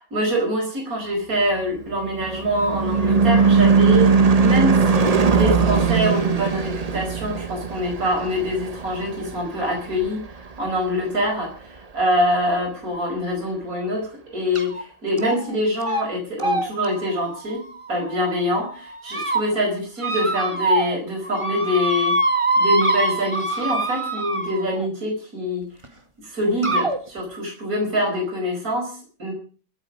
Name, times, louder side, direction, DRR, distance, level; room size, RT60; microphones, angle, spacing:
voice 1, 0.0-11.5 11.9-17.6 17.9-22.2 22.6-25.7 26.2-29.3, equal, 45° right, 1 dB, 5.3 m, -25 dB
Car passing by / Truck / Engine, 1.6-10.3, right 5 dB, 70° right, 0.3 m, -20 dB
sound 1, 14.6-14.8 15.2-15.5 15.8-16.0 16.4-18.3 18.8-19.4 20.0-21.0 21.2-24.9 25.8-25.9 26.6-27.0, right 2 dB, 15° right, 1.6 m, -24 dB
24.5 x 8.9 x 5.1 m, 0.40 s
omnidirectional pair, 2.2 m